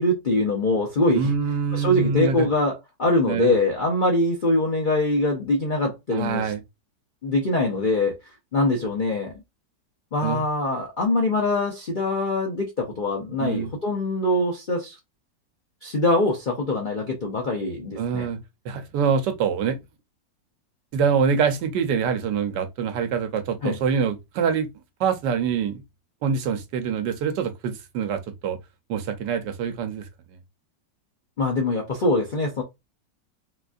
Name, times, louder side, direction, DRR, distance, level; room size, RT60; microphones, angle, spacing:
voice 1, 0.0-1.3 1.7-6.5 7.2-8.2 8.5-9.3 10.1-15.0 15.8-18.3 23.6-23.8 31.4-32.6, left 2 dB, 60° left, 0.5 m, -23 dB
voice 2, 1.1-2.5 3.3-3.5 6.1-6.6 10.2-10.4 13.4-13.7 18.0-18.4 18.6-19.8 20.9-24.7 25.0-25.8 26.2-28.6 28.9-30.1, right 6 dB, 80° right, 1.3 m, -25 dB
4.0 x 2.5 x 2.3 m
omnidirectional pair, 1.9 m